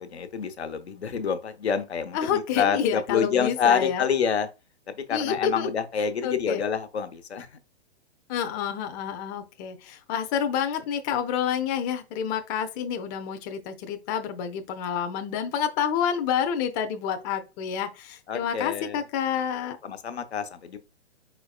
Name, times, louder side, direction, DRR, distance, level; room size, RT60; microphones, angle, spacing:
voice 1, 0.0-4.5 4.9-7.5 18.3-19.0 19.8-20.8, left 7 dB, 75° left, 0.8 m, -27 dB
voice 2, 2.1-4.0 5.1-5.7 6.2-6.6 8.3-19.8, left 8 dB, 20° left, 0.5 m, -28 dB
4.7 x 4.3 x 2.3 m
figure-of-eight pair, 120°, 32 cm